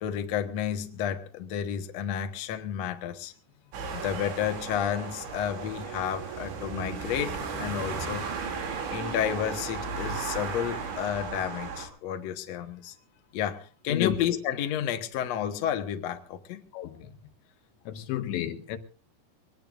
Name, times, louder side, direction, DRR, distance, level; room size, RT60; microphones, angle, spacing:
voice 1, 0.0-3.3 3.9-8.3 8.9-12.9 13.3-16.6, left 9 dB, 70° left, 1.6 m, -31 dB
sound 1, 3.7-11.9, right 5 dB, 85° right, 5.1 m, -35 dB
sound 2, 5.4-8.2, right 6 dB, 60° right, 4.0 m, -42 dB
voice 2, 16.7-17.1 17.9-18.8, left 11 dB, 85° left, 3.4 m, -31 dB
23.0 x 19.5 x 2.5 m
omnidirectional pair, 5.0 m